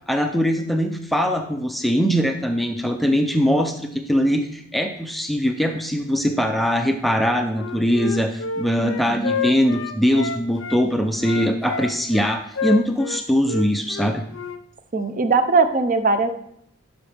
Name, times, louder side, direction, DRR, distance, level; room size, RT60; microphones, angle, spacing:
voice 1, 0.1-14.2, equal, ahead, 4 dB, 0.5 m, -21 dB
Wind instrument woodwind instrument, 7.5-10.8 11.2-14.6, left 5 dB, 70° left, 0.6 m, -29 dB
voice 2, 8.8-9.3 14.9-16.3, right 4 dB, 40° right, 9 dB, 0.6 m, -20 dB
10.5 x 6.1 x 3.4 m, 0.70 s
head